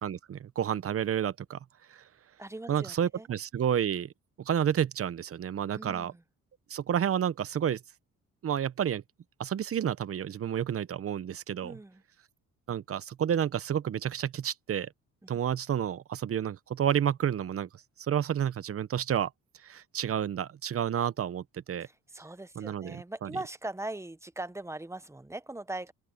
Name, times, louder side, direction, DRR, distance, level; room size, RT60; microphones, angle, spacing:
voice 1, 0.0-1.6 1.9-2.0 2.7-4.1 4.4-6.1 6.7-7.8 8.4-9.0 9.4-11.8 12.7-14.9 15.3-17.7 18.0-19.3 19.6-21.9 22.6-23.3, right 9 dB, 50° right, 0.9 m, -30 dB
voice 2, 2.4-3.3 5.7-6.2 11.6-12.0 21.8-25.9, right 2 dB, 10° right, 0.9 m, -40 dB
open air
cardioid pair, 90°, 30 cm